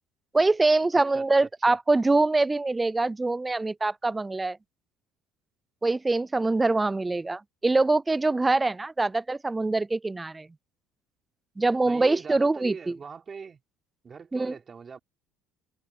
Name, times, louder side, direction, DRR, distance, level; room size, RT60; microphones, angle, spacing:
voice 1, 0.3-4.6 5.8-10.5 11.6-13.0 14.3-14.5, right 3 dB, 15° right, 0.4 m, -24 dB
voice 2, 0.9-1.3 1.7-1.8 11.8-13.6 14.0-15.0, right 5 dB, 30° right, 3.7 m, -41 dB
supercardioid pair, 105°, 0 cm